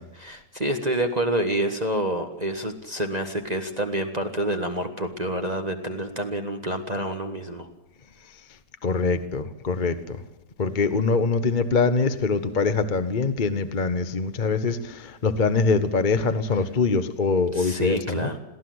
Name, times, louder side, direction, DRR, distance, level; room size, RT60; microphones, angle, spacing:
voice 1, 0.2-7.7 17.5-18.4, right 1 dB, 25° right, 4 dB, 1.5 m, -28 dB
voice 2, 8.8-10.2 10.6-18.3, left 4 dB, 35° left, 9 dB, 1.0 m, -23 dB
22.5 x 16.0 x 7.9 m, 0.94 s
omnidirectional pair, 1.9 m